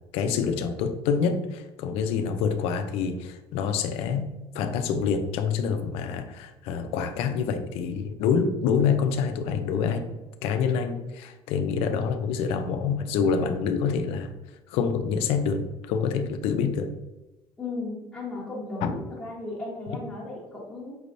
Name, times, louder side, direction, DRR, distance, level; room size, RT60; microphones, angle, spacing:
voice 1, 0.1-4.3 4.5-10.1 10.4-14.3 14.7-16.9 18.8-18.9, left 6 dB, 70° left, 7 dB, 0.5 m, -26 dB
voice 2, 17.6-21.0, left 2 dB, 5° left, -9 dB, 0.9 m, -35 dB
5.3 x 3.2 x 2.6 m, 1.1 s
cardioid pair, 180°, 10 cm